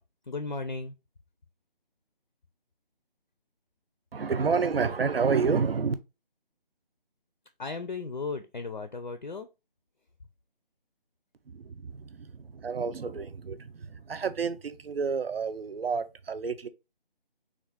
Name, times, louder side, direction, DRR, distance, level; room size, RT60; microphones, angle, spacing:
voice 1, 0.2-1.0 7.6-9.5, left 4 dB, 55° left, 0.4 m, -35 dB
voice 2, 4.1-5.9 11.5-16.7, right 5 dB, 85° right, 0.6 m, -29 dB
3.5 x 2.5 x 3.5 m
figure-of-eight pair, 180°, 29 cm